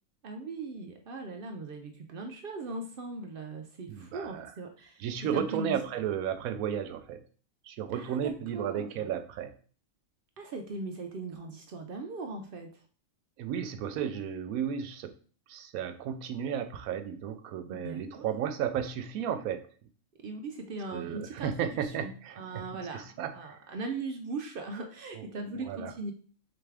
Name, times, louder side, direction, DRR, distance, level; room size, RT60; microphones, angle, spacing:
voice 1, 0.2-5.1 5.3-5.8 7.9-9.0 10.4-12.8 17.7-18.3 20.2-26.1, right 3 dB, 65° right, 3 dB, 0.5 m, -39 dB
voice 2, 3.9-4.5 5.0-7.2 7.6-9.5 13.4-15.1 15.5-19.7 20.9-22.6 22.9-23.6 25.1-25.2 25.6-25.9, right 9 dB, 85° right, 9 dB, 1.0 m, -34 dB
3.9 x 3.5 x 3.4 m, 0.41 s
omnidirectional pair, 1.5 m